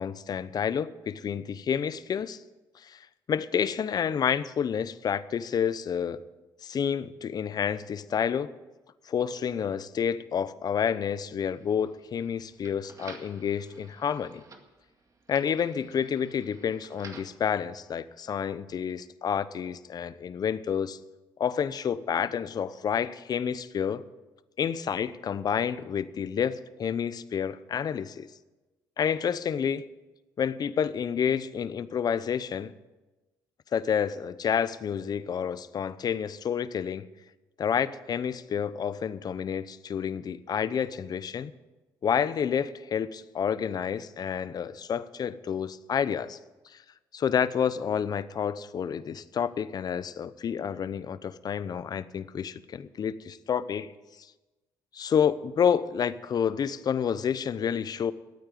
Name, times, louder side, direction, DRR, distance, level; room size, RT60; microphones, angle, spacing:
voice 1, 0.0-2.4 2.8-6.2 6.6-8.5 9.1-14.4 15.3-21.0 21.4-24.0 24.6-28.3 29.0-29.9 30.4-32.7 33.7-37.1 37.6-41.5 42.0-46.4 46.6-46.8 47.1-53.9 54.9-58.1, left 7 dB, 50° left, 0.7 m, -29 dB
sound 1, 11.5-17.4, right 4 dB, 40° right, 2.0 m, -52 dB
13.0 x 9.0 x 9.1 m
cardioid pair, 80°, 8 cm